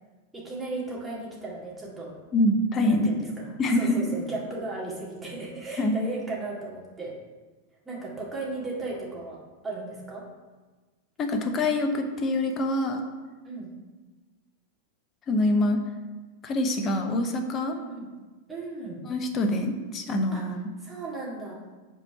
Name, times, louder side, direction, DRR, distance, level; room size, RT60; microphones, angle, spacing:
voice 1, 0.3-2.2 2.8-7.1 7.9-9.4 9.6-10.2 13.4-13.7 17.7-18.1 18.5-19.0 20.3-20.4 20.8-21.6, right 2 dB, 10° right, -5 dB, 2.2 m, -36 dB
voice 2, 2.3-3.1 3.6-4.1 5.8-6.0 11.2-13.0 15.3-15.8 16.4-17.8 19.1-20.7, left 1 dB, 30° left, 5 dB, 0.9 m, -25 dB
5.9 x 4.3 x 5.9 m, 1.3 s
figure-of-eight pair, 90°, 0 cm